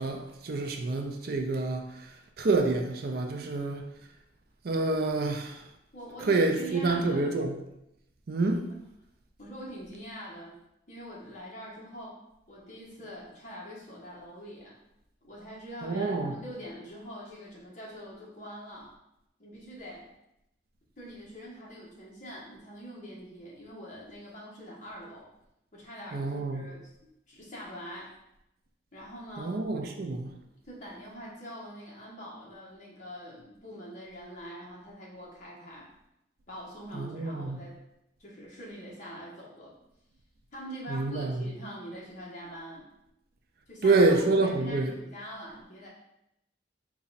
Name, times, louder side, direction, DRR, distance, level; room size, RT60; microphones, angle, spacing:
voice 1, 0.0-2.1 2.4-3.8 4.6-5.6 6.3-7.6 8.3-8.7 15.8-16.4 26.1-26.7 29.4-30.3 36.9-37.6 40.9-41.5 43.8-44.9, right 3 dB, 55° right, 0.5 m, -27 dB
voice 2, 5.9-7.3 9.4-10.5 10.9-12.2 12.5-14.7 15.2-18.9 19.4-20.1 21.0-25.3 25.7-26.9 27.3-28.1 28.9-29.6 30.6-35.8 36.5-37.7 38.2-39.7 40.5-42.8 43.7-45.9, equal, 45° left, 1.3 m, -44 dB
4.0 x 2.3 x 4.0 m
head